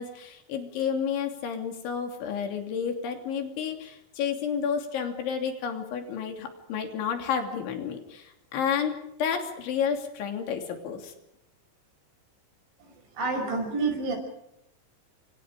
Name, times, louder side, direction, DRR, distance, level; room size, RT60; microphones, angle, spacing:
voice 1, 0.0-8.9 9.2-11.1, left 7 dB, 85° left, 4 dB, 5.3 m, -31 dB
voice 2, 13.2-14.2, right 3 dB, 80° right, 4 dB, 8.1 m, -28 dB
29.5 x 25.0 x 5.1 m, 0.79 s
omnidirectional pair, 5.2 m